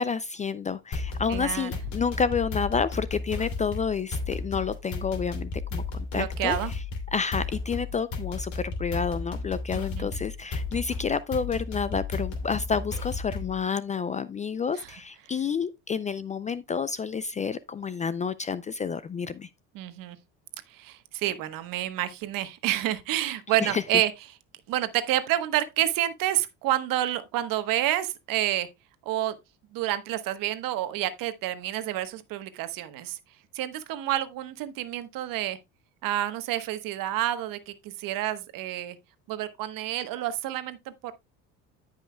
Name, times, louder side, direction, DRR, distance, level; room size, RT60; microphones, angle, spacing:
voice 1, 0.0-6.8 7.1-19.5 23.6-23.8, left 6 dB, 20° left, 0.3 m, -29 dB
sound 1, 0.9-13.6, left 3 dB, 50° left, 2.7 m, -34 dB
voice 2, 1.3-1.8 6.1-6.7 9.7-10.1 14.8-14.9 19.7-20.2 20.7-24.1 24.7-28.7 29.0-29.3 29.7-33.2 33.5-35.6 36.0-39.0 39.3-41.1, right 13 dB, 65° right, 1.2 m, -29 dB
14.0 x 5.6 x 2.2 m
supercardioid pair, 105°, 36 cm